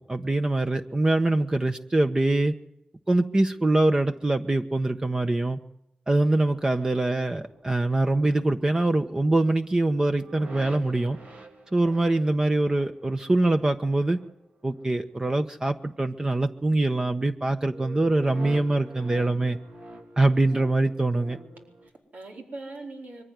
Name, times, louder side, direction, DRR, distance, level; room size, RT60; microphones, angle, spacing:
voice 1, 0.1-2.5 3.1-5.6 6.1-11.2 11.7-14.2 14.6-19.6 20.2-21.4, right 2 dB, 25° right, 6 dB, 1.3 m, -24 dB
sound 1, 6.3-15.8 16.0-16.5 16.8-17.2 17.6-21.9, right 2 dB, 65° right, 3.7 m, -47 dB
voice 2, 21.3-23.2, right 2 dB, 80° right, 1 dB, 4.6 m, -42 dB
23.5 x 15.5 x 9.7 m, 0.81 s
cardioid pair, 60°, 3 cm